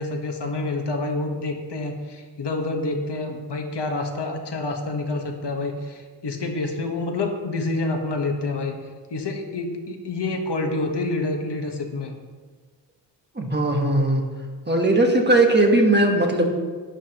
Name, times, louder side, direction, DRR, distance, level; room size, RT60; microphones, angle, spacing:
voice 1, 0.0-8.8 9.1-12.2, left 2 dB, 65° left, 3 dB, 1.3 m, -28 dB
voice 2, 13.4-14.2 14.7-16.5, right 2 dB, 25° right, 1 dB, 1.3 m, -18 dB
11.5 x 9.8 x 3.0 m, 1.5 s
wide cardioid pair, 120°, 43 cm